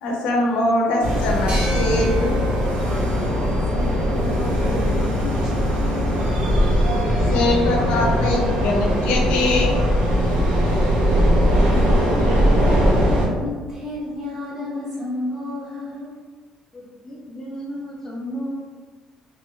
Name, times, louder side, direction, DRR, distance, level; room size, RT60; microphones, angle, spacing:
voice 1, 0.0-2.4 7.3-9.8 11.5-11.8 12.1-12.3, left 2 dB, 85° left, 0 dB, 0.6 m, -23 dB
sound 1, 1.0-13.3, equal, 85° right, 0.8 m, -20 dB
sound 2, 1.5-4.8, right 1 dB, 50° right, 1.3 m, -37 dB
voice 2, 3.6-6.3 13.3-16.1, left 1 dB, 25° right, -6 dB, 1.1 m, -32 dB
voice 3, 16.7-18.5, equal, 20° left, -3 dB, 0.6 m, -33 dB
3.1 x 2.3 x 3.0 m, 1.4 s
cardioid pair, 155°, 2 cm